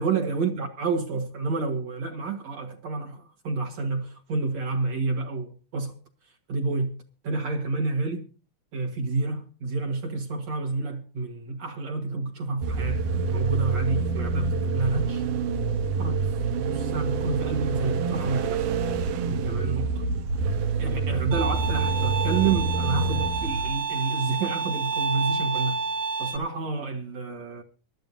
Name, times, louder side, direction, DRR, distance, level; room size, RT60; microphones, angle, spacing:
voice 1, 0.0-6.0 6.5-7.0 7.2-8.3 8.7-15.2 16.0-16.3 16.7-18.7 19.3-20.1 20.8-25.8 26.2-27.6, right 3 dB, 60° right, 2.5 m, -29 dB
sound 1, 12.6-23.9, right 4 dB, 80° right, 2.6 m, -27 dB
Bowed string instrument, 21.3-26.4, right 5 dB, 45° right, 2.4 m, -29 dB
24.0 x 12.5 x 2.7 m
omnidirectional pair, 3.7 m